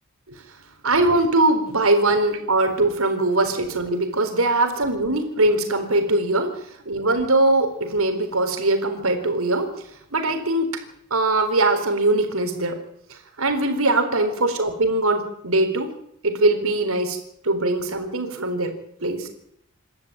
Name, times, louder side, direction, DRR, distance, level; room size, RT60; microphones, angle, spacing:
voice 1, 0.8-6.5 6.9-9.7 10.1-10.8 11.1-12.8 13.1-15.9 16.2-17.2 17.4-18.7 19.0-19.3, right 2 dB, 75° right, 6 dB, 4.2 m, -21 dB
27.5 x 12.5 x 8.9 m, 0.73 s
head